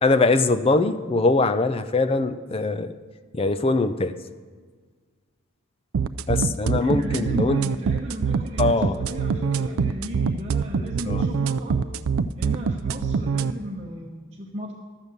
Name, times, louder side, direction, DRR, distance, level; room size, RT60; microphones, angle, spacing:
voice 1, 0.0-2.9 3.3-4.1 6.3-7.6 8.6-8.9 9.2-9.8 11.1-11.2, left 3 dB, 25° left, 11 dB, 0.4 m, -22 dB
sound 1, 5.9-13.5, right 6 dB, 75° right, 0.4 m, -24 dB
voice 2, 6.8-11.8 12.4-14.7, equal, 30° right, -2 dB, 0.9 m, -35 dB
12.0 x 7.3 x 6.6 m, 1.6 s
head